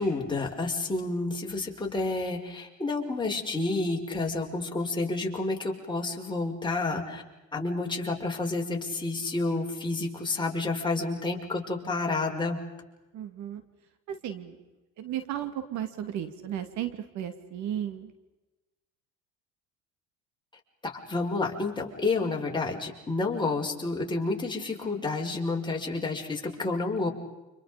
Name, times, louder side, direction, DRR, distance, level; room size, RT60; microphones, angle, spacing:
voice 1, 0.0-7.2 7.5-12.6 20.8-27.1, left 3 dB, 15° left, 0 dB, 5.8 m, -30 dB
voice 2, 13.1-13.6 14.1-14.6 15.0-18.1, right 10 dB, 65° right, 9 dB, 2.8 m, -34 dB
30.0 x 27.5 x 5.3 m, 1.1 s
supercardioid pair, 90°, 31 cm